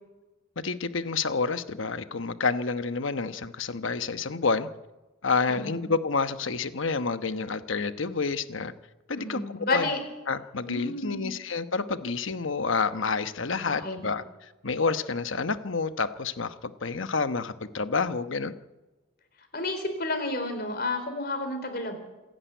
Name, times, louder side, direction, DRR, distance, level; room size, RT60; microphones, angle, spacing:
voice 1, 0.6-4.7 5.2-8.7 9.1-9.4 9.7-9.9 10.3-14.2 14.6-16.5 16.8-18.5, left 4 dB, 75° left, 11 dB, 1.1 m, -29 dB
voice 2, 5.5-5.9 9.2-10.0 10.7-11.3 13.6-14.2 19.5-22.0, left 2 dB, 45° left, 7 dB, 4.1 m, -31 dB
26.5 x 11.0 x 9.2 m, 1.1 s
head